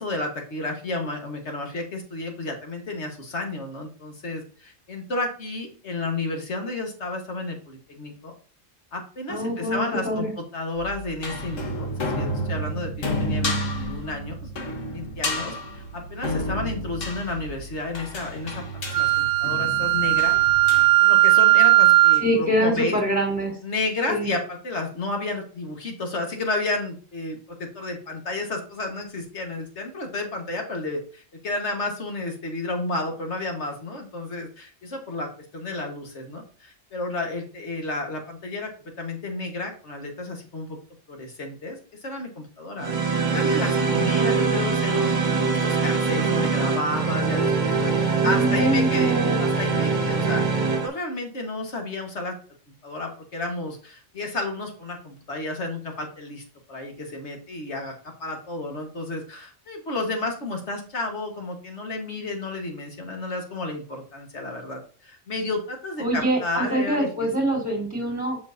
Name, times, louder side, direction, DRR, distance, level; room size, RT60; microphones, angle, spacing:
voice 1, 0.0-8.3 8.9-14.5 14.9-18.6 18.9-20.4 21.0-23.0 23.6-35.3 35.5-38.7 39.0-40.8 41.1-42.9 43.3-52.3 52.8-56.4 56.7-57.9 58.2-67.3, left 2 dB, 60° left, 3 dB, 1.8 m, -31 dB
voice 2, 9.3-10.3 22.2-23.6 24.1-24.3 48.2-49.3 66.0-68.4, right 1 dB, 5° right, -2 dB, 2.4 m, -24 dB
sound 1, 10.8-20.9, equal, 80° left, 1.7 m, -31 dB
Wind instrument woodwind instrument, 18.9-22.3, right 17 dB, 90° right, 1.0 m, -17 dB
sound 2, 42.8-50.9, right 4 dB, 35° right, 1.3 m, -23 dB
7.1 x 6.0 x 2.7 m, 0.40 s
omnidirectional pair, 1.3 m